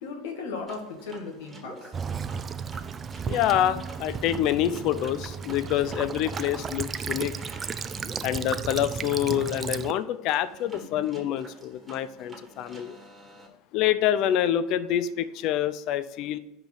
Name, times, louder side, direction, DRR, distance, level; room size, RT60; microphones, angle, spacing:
voice 1, 0.0-1.9 2.3-2.4, left 4 dB, 75° left, 2 dB, 1.7 m, -37 dB
sound 1, 0.7-13.5, right 1 dB, 10° right, 1.7 m, -47 dB
Child speech kid speaking / Bird vocalization bird call bird song / Stream, 1.9-9.9, right 6 dB, 30° right, 0.4 m, -34 dB
voice 2, 3.3-7.3 8.2-13.0 13.7-16.4, left 11 dB, 55° left, 15 dB, 0.4 m, -26 dB
5.3 x 5.1 x 6.0 m, 0.90 s
supercardioid pair, 105°, 0 cm